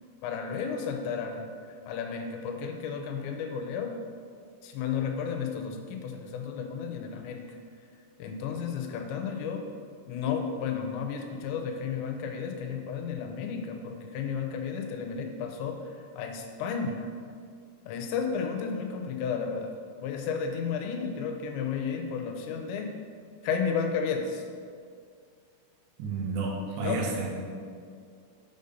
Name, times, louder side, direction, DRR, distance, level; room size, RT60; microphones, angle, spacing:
voice 1, 0.2-1.5 1.9-4.0 4.6-7.6 8.2-9.7 10.1-17.1 17.9-19.7 20.0-22.9 23.4-24.4 26.8-27.0, left 6 dB, 90° left, 4 dB, 2.9 m, -32 dB
voice 2, 26.0-27.3, right 3 dB, 90° right, -2 dB, 3.5 m, -31 dB
6.9 x 5.4 x 5.3 m, 2.2 s
omnidirectional pair, 5.1 m